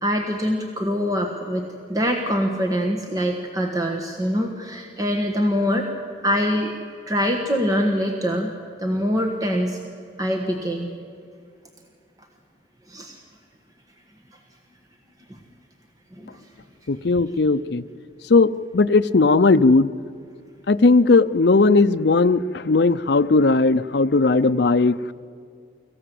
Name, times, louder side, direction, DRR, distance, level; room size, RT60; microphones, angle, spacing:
voice 1, 0.0-5.9 6.2-6.8 7.1-8.5 8.8-9.8 10.2-10.9 12.9-13.1 15.3-15.4 16.2-16.4, equal, 20° right, 3 dB, 1.4 m, -24 dB
voice 2, 16.9-17.8 18.3-19.9 20.7-25.1, left 3 dB, 60° left, 11 dB, 0.6 m, -17 dB
26.0 x 15.0 x 7.7 m, 2.3 s
head